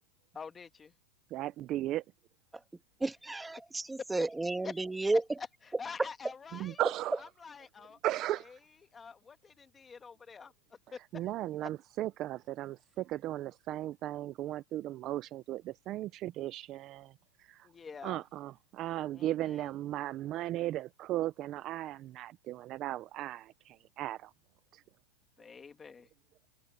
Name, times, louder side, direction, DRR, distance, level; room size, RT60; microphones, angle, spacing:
voice 1, 0.3-0.9 4.6-4.8 5.4-5.5 5.8-6.8 7.2-8.0 8.9-10.5 10.9-11.0 17.6-18.2 19.1-19.7 25.4-26.1, left 5 dB, 15° left, 1.5 m, -46 dB
voice 2, 1.3-2.0 6.5-7.2 8.0-8.5 11.1-17.1 17.4-17.7 18.0-24.3 24.7-24.8, right 14 dB, 30° right, 0.5 m, -36 dB
voice 3, 3.0-5.2 6.0-6.1, right 2 dB, 5° right, 1.5 m, -32 dB
supercardioid pair, 155°, 0 cm